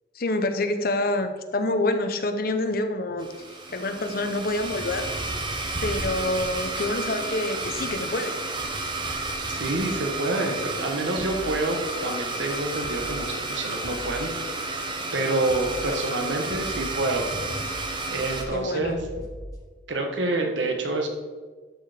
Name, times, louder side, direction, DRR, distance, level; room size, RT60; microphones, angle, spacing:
voice 1, 0.1-3.3 3.7-5.1 5.8-8.4 18.5-18.9, left 2 dB, 50° left, 7 dB, 0.8 m, -27 dB
Domestic sounds home sounds, 3.2-18.4, right 2 dB, 25° right, 0.9 m, -32 dB
voice 2, 9.5-17.2 18.1-19.0 19.9-21.1, right 2 dB, 75° right, 2 dB, 1.4 m, -28 dB
sound 1, 11.2-12.0 12.3-12.6 12.8-13.4 13.8-14.7 15.0-15.2 15.5-16.0 16.3-19.6, equal, 20° left, 1.3 m, -41 dB
12.0 x 4.8 x 5.0 m, 1.4 s
head